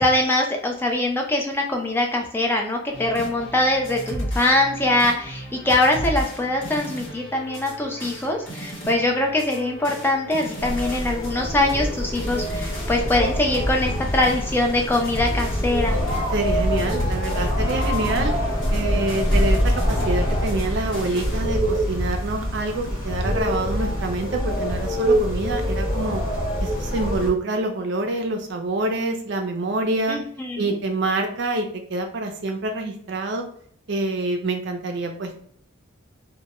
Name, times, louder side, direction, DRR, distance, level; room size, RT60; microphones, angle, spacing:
voice 1, 0.0-16.0 30.1-30.7, left 2 dB, 10° left, 1 dB, 0.3 m, -23 dB
sound 1, 2.9-21.4, equal, 75° left, 1.1 m, -34 dB
sound 2, 10.6-27.3, equal, 45° left, 0.9 m, -25 dB
voice 2, 16.3-18.3 18.7-26.2 26.6-30.2 30.6-33.4 33.9-35.4, right 2 dB, 60° right, 4 dB, 0.4 m, -26 dB
2.2 x 2.0 x 2.8 m, 0.62 s
head